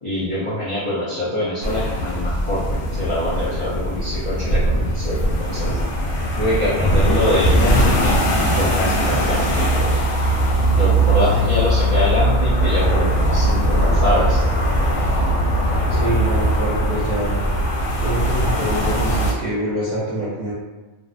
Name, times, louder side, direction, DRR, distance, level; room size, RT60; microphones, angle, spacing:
voice 1, 0.0-5.8 6.4-10.0 10.7-14.5, left 1 dB, 45° left, -11 dB, 0.4 m, -24 dB
sound 1, 1.6-19.3, right 1 dB, 85° left, 1.0 m, -19 dB
voice 2, 15.9-17.4 18.0-20.5, equal, 60° right, -9 dB, 0.4 m, -25 dB
2.6 x 2.0 x 2.4 m, 1.2 s
omnidirectional pair, 1.4 m